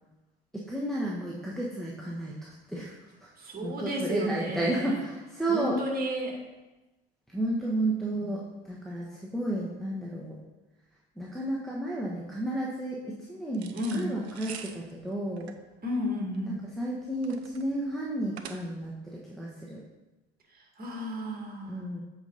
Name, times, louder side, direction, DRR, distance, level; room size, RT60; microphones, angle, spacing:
voice 1, 0.5-2.9 3.2-3.3 3.6-5.8 7.3-10.4 11.2-15.5 16.5-19.8 21.7-22.0, right 1 dB, ahead, -4 dB, 1.3 m, -32 dB
voice 2, 3.4-5.0 5.5-6.4 8.1-8.4 13.7-14.1 15.8-16.6 20.8-21.8, equal, 30° right, 0 dB, 2.3 m, -32 dB
sound 1, 13.5-19.0, right 7 dB, 90° right, 0.5 m, -46 dB
8.0 x 5.0 x 4.1 m, 1.1 s
hypercardioid pair, 65°, 31 cm